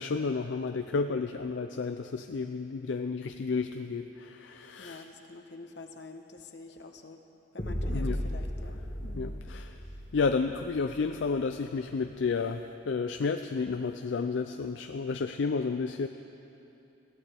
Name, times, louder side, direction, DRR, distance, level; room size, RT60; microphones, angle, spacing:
voice 1, 0.0-5.0 7.9-8.2 9.2-9.8 10.1-16.1, left 4 dB, 80° left, 7 dB, 0.5 m, -31 dB
voice 2, 4.8-7.2 7.5-9.4, left 2 dB, 65° left, 5 dB, 1.0 m, -47 dB
sound 1, 7.6-11.6, equal, 45° left, 1.4 m, -36 dB
21.5 x 15.5 x 3.5 m, 2.8 s
head